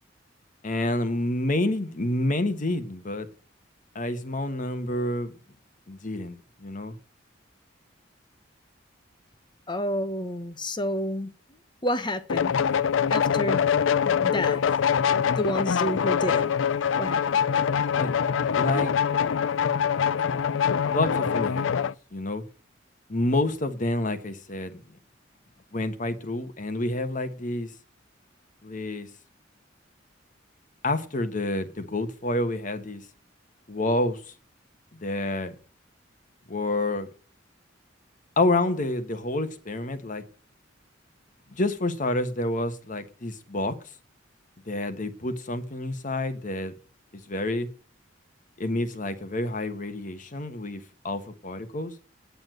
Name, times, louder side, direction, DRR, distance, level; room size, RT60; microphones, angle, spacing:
voice 1, 0.6-3.3 3.9-5.3 5.9-6.9 17.9-18.1 18.5-18.9 20.9-22.4 23.1-24.8 25.7-27.7 28.6-29.1 30.8-33.0 33.7-34.2 35.0-35.5 36.5-37.1 38.4-40.2 41.6-43.8 44.7-46.7 47.3-47.7 48.6-51.9, left 2 dB, 45° left, 1.3 m, -28 dB
voice 2, 9.7-11.3 11.8-12.5 13.1-13.6 14.1-14.6 15.4-16.5 17.0-17.4, equal, 25° left, 0.9 m, -29 dB
sound 1, 12.3-21.9, left 7 dB, 80° left, 0.5 m, -24 dB
9.3 x 7.0 x 7.8 m
head